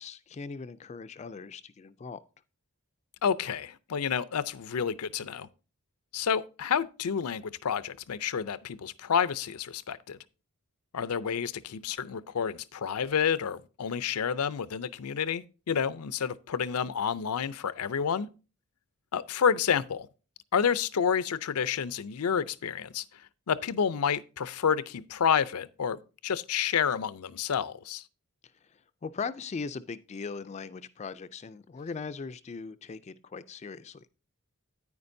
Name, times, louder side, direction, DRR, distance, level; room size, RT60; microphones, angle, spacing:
voice 1, 0.0-2.2 28.7-34.1, left 5 dB, 30° left, 0.3 m, -39 dB
voice 2, 3.2-5.5 6.1-10.2 10.9-18.3 19.1-20.1 20.5-23.0 23.5-28.0, left 7 dB, 85° left, 0.5 m, -29 dB
9.6 x 9.4 x 2.6 m
head